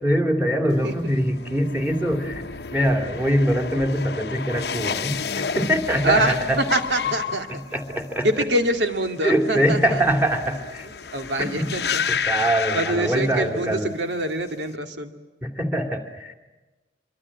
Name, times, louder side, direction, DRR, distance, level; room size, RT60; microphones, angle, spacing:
voice 1, 0.0-6.6 7.5-8.3 9.2-10.9 11.4-11.7 12.3-13.9 15.4-16.3, equal, 10° right, 5 dB, 2.7 m, -23 dB
sound 1, 0.7-13.8 14.1-14.6, left 6 dB, 60° left, 0.9 m, -31 dB
voice 2, 6.0-7.5 8.2-10.0 11.1-12.0 12.7-15.1, right 1 dB, 75° right, 6 dB, 2.3 m, -25 dB
25.5 x 24.0 x 8.8 m, 1.2 s
head